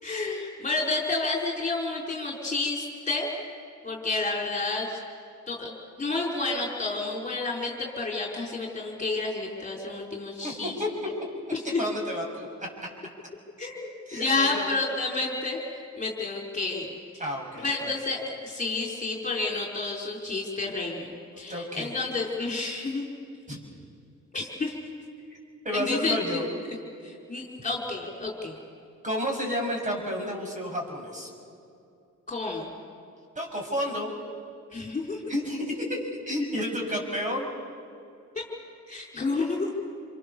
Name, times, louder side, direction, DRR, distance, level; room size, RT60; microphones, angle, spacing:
voice 1, 0.0-3.3 3.8-5.0 5.5-10.7 11.7-11.8 13.6-15.6 15.9-16.9 17.6-21.1 21.4-23.0 24.3-24.8 25.7-26.4 27.0-28.5 32.3-32.7 34.7-35.2 38.3-38.4 38.9-39.7, left 3 dB, 25° left, -1 dB, 4.8 m, -30 dB
voice 2, 10.4-10.9 11.5-12.5 14.1-14.6 17.2-17.9 21.3-21.9 23.5-23.6 25.6-26.5 29.0-31.3 33.3-34.1 35.3-37.5, equal, 25° right, 0 dB, 6.8 m, -31 dB
28.0 x 23.5 x 7.1 m, 2.5 s
cardioid pair, 90°, 30 cm